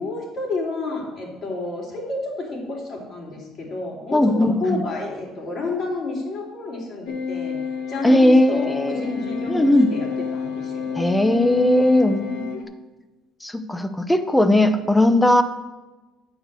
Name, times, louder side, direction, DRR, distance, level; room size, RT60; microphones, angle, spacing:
voice 1, 0.0-4.2 4.6-7.6 7.9-11.2 11.7-12.5, left 2 dB, 50° left, -2 dB, 3.0 m, -30 dB
voice 2, 4.1-4.8 8.0-9.1 9.5-9.9 10.9-12.3 13.4-15.4, left 1 dB, 10° left, 10 dB, 0.6 m, -18 dB
sound 1, 7.1-12.6, left 6 dB, 90° left, 1.0 m, -29 dB
8.8 x 4.9 x 6.8 m, 1.2 s
cardioid pair, 115°, 0 cm